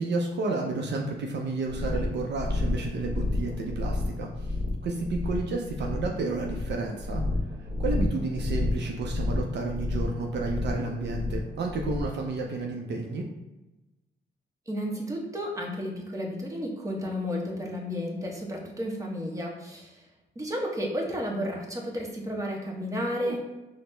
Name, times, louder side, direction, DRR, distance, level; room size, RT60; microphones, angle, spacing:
voice 1, 0.0-4.3 4.8-7.2 7.8-13.2 23.2-23.4, right 3 dB, 65° right, 1 dB, 0.5 m, -31 dB
sound 1, 1.7-12.2, left 2 dB, 40° right, 1.1 m, -30 dB
voice 2, 14.7-20.0 20.4-23.4, equal, 15° right, -1 dB, 0.9 m, -32 dB
4.1 x 2.1 x 3.2 m, 1.0 s
cardioid pair, 80°, 19 cm